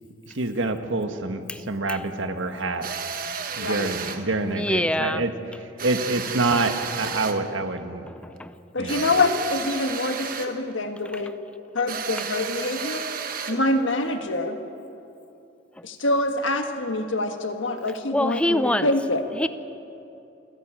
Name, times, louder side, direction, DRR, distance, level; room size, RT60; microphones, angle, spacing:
voice 1, 0.3-2.9 3.5-5.3 5.8-8.0 8.8-9.0, right 2 dB, 85° right, 7 dB, 1.4 m, -26 dB
voice 2, 1.5-2.0 4.5-5.2 8.1-8.5 15.8-15.9 18.1-18.9 19.3-19.5, left 1 dB, 5° left, 12 dB, 0.5 m, -26 dB
sound 1, 2.8-4.3 5.8-7.5 8.9-10.6 11.9-13.7, right 6 dB, 50° right, 1.2 m, -32 dB
voice 3, 3.6-3.9 8.7-11.3 11.7-13.0 13.5-14.6 15.8-19.2, left 2 dB, 90° left, 6 dB, 1.6 m, -25 dB
27.5 x 11.0 x 8.8 m, 2.7 s
head